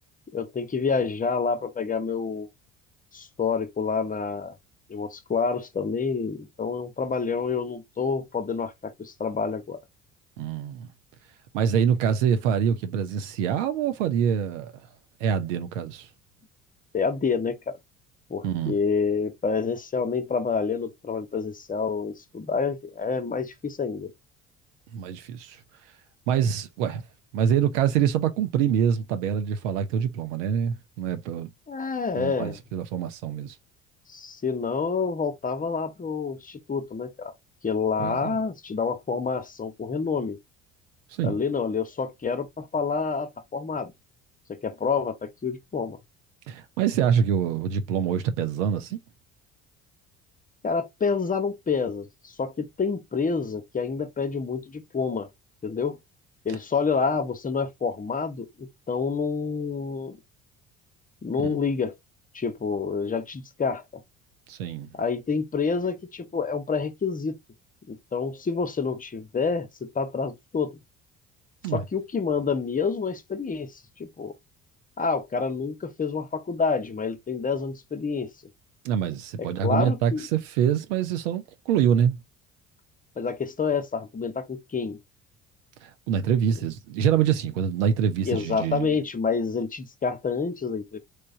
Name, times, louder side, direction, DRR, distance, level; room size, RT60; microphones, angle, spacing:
voice 1, 0.3-2.5 3.1-4.5 4.9-9.8 16.9-17.8 18.3-24.1 31.7-32.6 34.1-37.3 37.6-40.4 41.2-43.9 44.5-46.0 50.6-55.3 55.6-56.0 56.4-60.2 61.2-62.0 62.3-63.8 64.9-67.4 67.9-70.8 71.7-74.3 75.0-78.3 79.4-80.3 83.2-85.0 86.5-86.6 88.2-91.0, left 5 dB, 20° left, 0.7 m, -28 dB
voice 2, 10.4-10.9 11.5-14.7 15.2-16.1 18.4-18.8 24.9-25.6 26.3-27.0 27.3-31.5 32.1-33.5 38.0-38.3 41.2-41.4 46.5-49.0 64.5-64.9 71.6-71.8 78.8-82.2 85.8-89.0, right 8 dB, 75° right, 0.6 m, -25 dB
3.1 x 2.1 x 3.6 m
hypercardioid pair, 60°, 37 cm